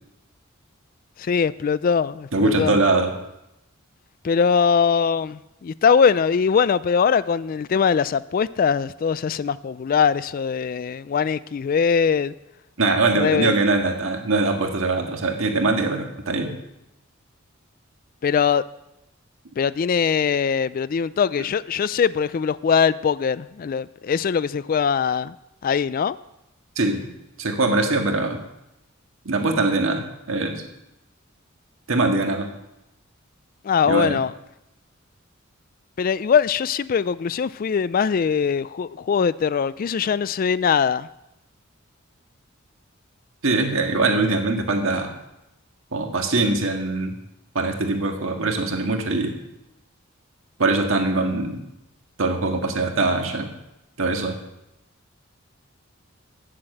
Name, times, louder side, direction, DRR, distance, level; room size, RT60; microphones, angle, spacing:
voice 1, 1.2-2.8 4.2-12.3 13.2-13.5 18.2-18.6 19.6-25.3 25.6-26.2 33.6-34.3 36.0-41.1, left 6 dB, 45° left, 0.3 m, -21 dB
voice 2, 2.3-3.1 12.8-16.5 26.8-27.1 27.4-28.4 29.3-30.6 31.9-32.5 33.8-34.2 43.4-45.1 45.9-47.1 47.6-49.4 50.6-51.6 52.2-53.5 54.0-54.4, right 3 dB, 75° right, 1.8 m, -22 dB
9.0 x 7.6 x 7.8 m
head